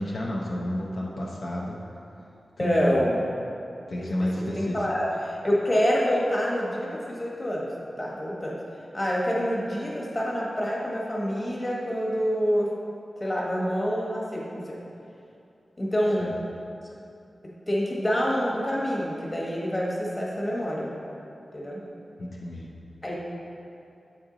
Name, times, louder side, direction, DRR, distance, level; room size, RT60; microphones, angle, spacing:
voice 1, 0.0-1.8 2.6-3.0 3.9-4.9 16.2-16.3 22.2-22.7, left 1 dB, 65° left, -3 dB, 0.6 m, -31 dB
voice 2, 2.6-3.2 4.0-7.7 8.0-8.6 8.9-12.7 13.2-14.8 15.8-16.3 17.7-20.9 21.5-21.8 23.0-23.2, equal, 25° left, -4 dB, 1.2 m, -27 dB
8.0 x 4.4 x 3.8 m, 2.6 s
wide cardioid pair, 105°, 0 cm